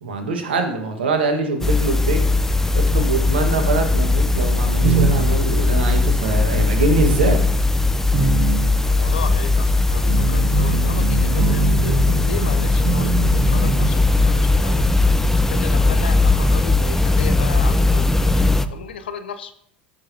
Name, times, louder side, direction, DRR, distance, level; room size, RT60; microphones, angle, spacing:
voice 1, 0.0-2.2 2.7-7.4, right 3 dB, 80° right, 5 dB, 1.4 m, -23 dB
sound 1, 1.6-18.7, left 2 dB, 5° left, 0.6 m, -18 dB
sound 2, 4.5-5.7 6.7-7.0 7.4-13.9, right 7 dB, 55° right, 0.8 m, -24 dB
voice 2, 8.9-19.5, left 7 dB, 80° left, 11 dB, 0.7 m, -34 dB
14.0 x 6.3 x 2.7 m, 0.69 s
hypercardioid pair, 75°, 5 cm